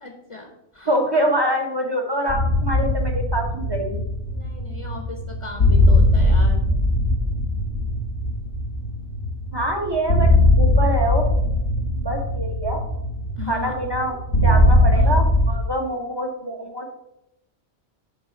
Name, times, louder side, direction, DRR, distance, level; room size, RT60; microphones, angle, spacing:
voice 1, 0.0-0.9 4.3-6.6 13.4-13.7 14.9-15.1, left 2 dB, 30° left, 2 dB, 0.9 m, -37 dB
voice 2, 0.9-4.0 9.5-11.2 12.0-12.8 13.5-16.9, right 1 dB, 25° right, 2 dB, 1.0 m, -25 dB
sound 1, 2.3-15.5, left 1 dB, 90° left, 2.4 m, -20 dB
7.7 x 3.7 x 5.7 m, 0.86 s
omnidirectional pair, 1.2 m